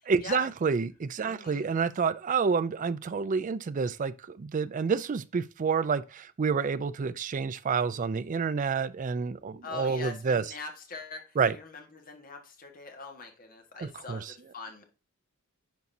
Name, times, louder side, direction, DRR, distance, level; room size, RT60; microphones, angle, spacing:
voice 1, 0.1-10.4 11.4-11.6 13.8-14.3, right 5 dB, 35° right, 0.4 m, -29 dB
voice 2, 1.2-1.7 9.6-14.8, left 4 dB, 40° left, 1.6 m, -43 dB
10.5 x 4.2 x 2.7 m
head